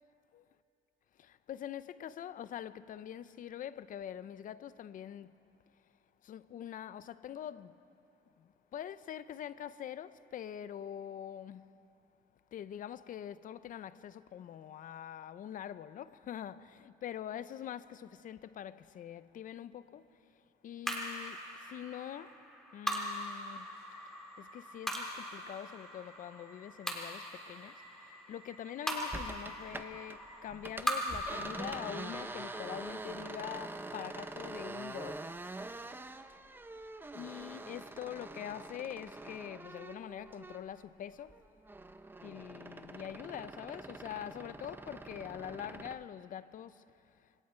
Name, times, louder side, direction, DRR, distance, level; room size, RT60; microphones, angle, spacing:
voice 1, 1.5-5.3 6.3-7.7 8.7-11.6 12.5-20.0 20.6-21.4 21.7-22.3 22.7-23.7 24.4-27.7 28.3-35.2 37.1-41.3 42.2-46.7, left 10 dB, 50° left, 0.7 m, -44 dB
sound 1, 20.9-35.4, equal, 5° left, 3.2 m, -41 dB
sound 2, 23.5-34.5, left 1 dB, 35° left, 5.3 m, -60 dB
sound 3, 29.1-30.2 30.5-40.9 41.2-46.0, right 2 dB, 10° right, 0.8 m, -45 dB
27.0 x 24.0 x 4.5 m
cardioid pair, 110°, 17 cm